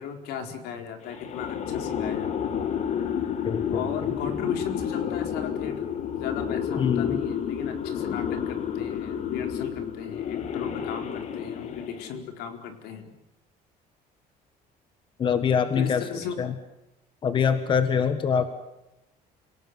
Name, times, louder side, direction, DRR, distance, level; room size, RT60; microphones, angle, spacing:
voice 1, 0.0-2.5 3.7-13.1 15.7-16.3, left 7 dB, 80° left, 5 dB, 4.4 m, -36 dB
sound 1, 1.1-12.2, left 8 dB, 45° left, 2.0 m, -30 dB
voice 2, 3.4-3.9 6.8-7.2 15.2-16.0 16.4-16.5 17.2-18.4, left 7 dB, 30° left, 10 dB, 1.5 m, -24 dB
29.0 x 18.5 x 9.6 m, 0.92 s
cardioid pair, 165°, 16 cm